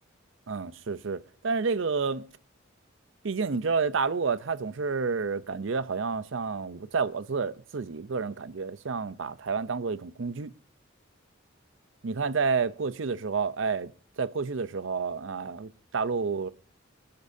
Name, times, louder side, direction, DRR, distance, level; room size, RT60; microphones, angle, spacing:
voice 1, 0.5-2.2 3.2-10.5 12.0-13.9 14.2-16.5, right 5 dB, 65° right, 0.6 m, -30 dB
27.0 x 10.5 x 2.7 m
head